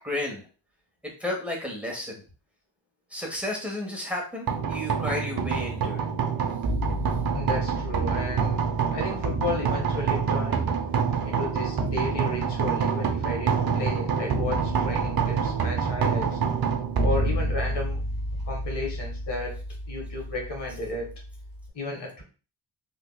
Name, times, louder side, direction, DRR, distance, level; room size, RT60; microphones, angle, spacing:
voice 1, 0.0-0.4 1.2-2.1 3.1-6.1 7.1-7.2, left 1 dB, 5° right, -1 dB, 1.3 m, -32 dB
sound 1, 4.5-21.7, right 5 dB, 50° right, 0.7 m, -27 dB
voice 2, 7.3-8.6 8.9-10.7 11.2-16.4 17.0-18.0 18.4-19.6 19.9-21.1 21.7-22.2, left 2 dB, 65° left, 0 dB, 1.5 m, -33 dB
3.6 x 2.8 x 2.3 m, 0.35 s
supercardioid pair, 50°, 46 cm